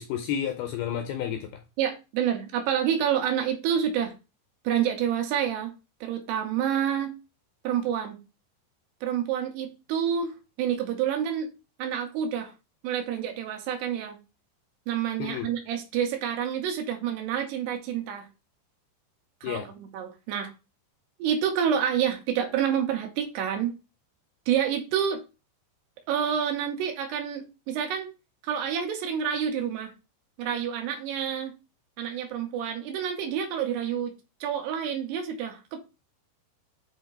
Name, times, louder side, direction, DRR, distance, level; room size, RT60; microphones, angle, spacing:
voice 1, 0.0-1.6 15.2-15.5 19.4-19.7, left 9 dB, 80° left, 2.3 m, -31 dB
voice 2, 1.8-4.1 4.6-5.7 6.0-7.2 7.6-8.2 9.0-11.5 11.8-12.5 12.8-14.2 14.9-18.3 19.4-20.5 21.2-23.7 24.5-25.2 26.1-28.1 28.4-29.9 30.4-31.5 32.0-34.1 34.4-35.8, right 9 dB, 80° right, 3.0 m, -28 dB
8.0 x 2.8 x 4.4 m
omnidirectional pair, 5.1 m